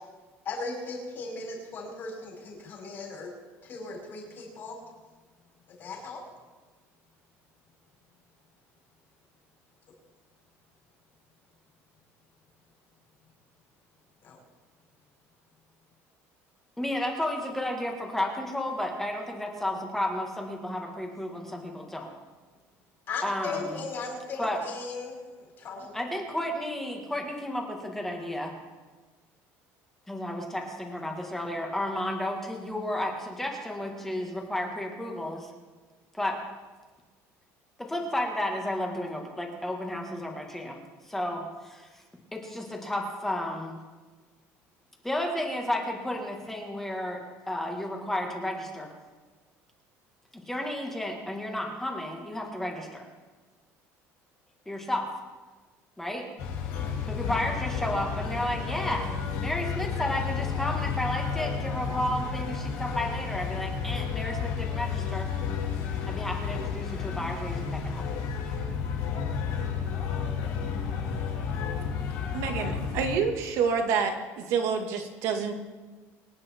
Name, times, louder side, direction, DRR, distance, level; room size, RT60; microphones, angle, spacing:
voice 1, 0.5-3.3 3.6-4.8 5.8-6.2 14.2-14.4 23.1-25.9, left 3 dB, 35° left, -1 dB, 5.5 m, -37 dB
voice 2, 16.8-22.1 23.2-23.8 24.4-24.6 25.9-28.5 30.1-35.5 36.1-36.4 37.8-40.8 41.1-41.9 42.3-43.7 45.0-48.9 50.3-53.1 54.7-55.1 56.0-56.3 57.1-59.1 59.4-65.3 66.0-68.0, left 1 dB, 5° left, 1 dB, 1.9 m, -32 dB
sound 1, 56.4-73.2, left 6 dB, 90° left, 6.4 m, -31 dB
voice 3, 72.3-75.5, right 6 dB, 60° right, 5 dB, 2.1 m, -28 dB
24.5 x 9.5 x 4.5 m, 1.3 s
cardioid pair, 170°, 6 cm